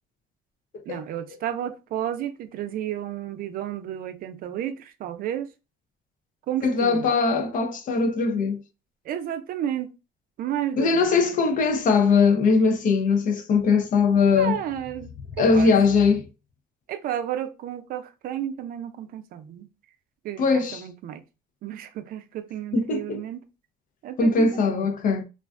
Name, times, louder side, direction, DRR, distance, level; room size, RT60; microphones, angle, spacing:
voice 1, 0.9-5.5 6.5-7.1 9.1-9.9 10.4-11.4 14.3-15.7 16.9-19.7 20.2-21.2 21.6-23.4 24.0-24.9, right 10 dB, 60° right, 0.4 m, -32 dB
voice 2, 6.6-8.6 10.8-14.6 15.4-16.3 20.4-20.8 22.7-23.2 24.2-25.2, left 4 dB, 50° left, 0.5 m, -21 dB
2.4 x 2.2 x 2.3 m
cardioid pair, 110°, 17 cm